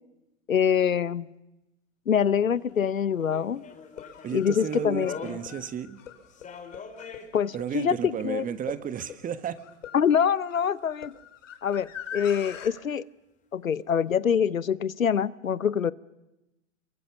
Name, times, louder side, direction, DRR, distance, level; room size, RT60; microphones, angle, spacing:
voice 1, 0.5-1.3 2.1-3.6 4.3-5.1 7.3-8.5 9.9-11.1 11.6-13.0 13.5-15.9, left 8 dB, 90° left, 19 dB, 0.9 m, -25 dB
sound 1, 2.3-5.8 6.2-7.3 10.9-11.0, left 5 dB, 20° left, 3.5 m, -42 dB
sound 2, 2.7-2.8 3.8-12.7, left 8 dB, 70° left, 3.5 m, -44 dB
voice 2, 4.2-6.0 7.5-9.6, right 8 dB, 20° right, 13 dB, 1.4 m, -33 dB
27.5 x 22.5 x 7.1 m, 0.96 s
hypercardioid pair, 110°, 39 cm